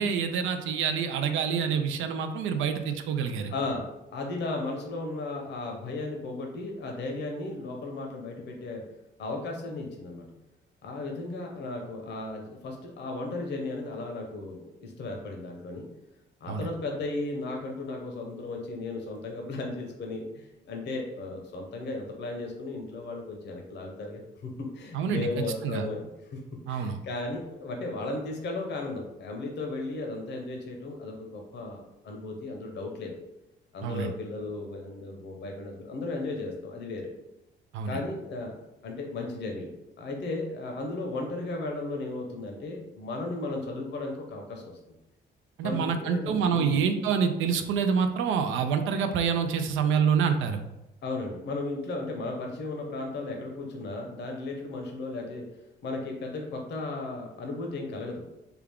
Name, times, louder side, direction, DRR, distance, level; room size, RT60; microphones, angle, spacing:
voice 1, 0.0-3.5 16.5-16.7 24.9-25.9 26.7-27.0 33.8-34.1 37.7-38.0 45.6-50.6, right 6 dB, 80° right, 7 dB, 0.4 m, -27 dB
voice 2, 3.5-8.8 9.2-10.3 10.8-15.9 16.4-26.4 26.7-33.1 33.7-37.1 37.9-38.6 38.8-39.7 40.0-44.7 45.6-46.8 51.0-55.4 55.8-58.2, left 2 dB, 60° left, 1 dB, 0.7 m, -35 dB
3.4 x 2.3 x 3.5 m, 0.93 s
cardioid pair, 90°, 20 cm